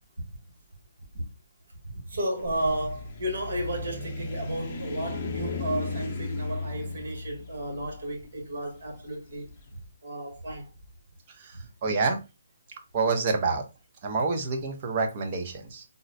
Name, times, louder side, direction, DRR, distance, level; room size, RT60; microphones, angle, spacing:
voice 1, 1.9-9.5 10.0-10.7 11.5-11.7, right 1 dB, 60° right, 1.4 m, -33 dB
sound 1, 2.3-9.5, left 3 dB, 30° left, 0.7 m, -36 dB
voice 2, 11.4-12.2 12.9-13.6 14.0-15.8, right 4 dB, 35° right, 0.8 m, -27 dB
3.8 x 2.1 x 2.6 m
hypercardioid pair, 150°, 0 cm